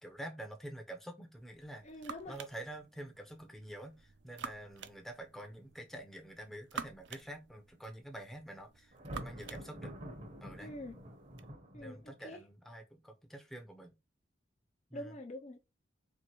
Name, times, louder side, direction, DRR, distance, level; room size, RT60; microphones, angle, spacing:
voice 1, 0.0-1.8 2.3-9.9 10.4-10.7 11.4-13.9 14.9-15.1, right 1 dB, ahead, 0.8 m, -47 dB
sound 1, 1.4-11.5, right 6 dB, 65° right, 0.5 m, -50 dB
voice 2, 1.8-2.3 10.6-10.9 11.7-12.4 14.9-15.6, left 1 dB, 35° left, 0.6 m, -45 dB
Thunder, 8.9-12.2, equal, 40° right, 1.0 m, -47 dB
4.6 x 3.2 x 3.0 m
head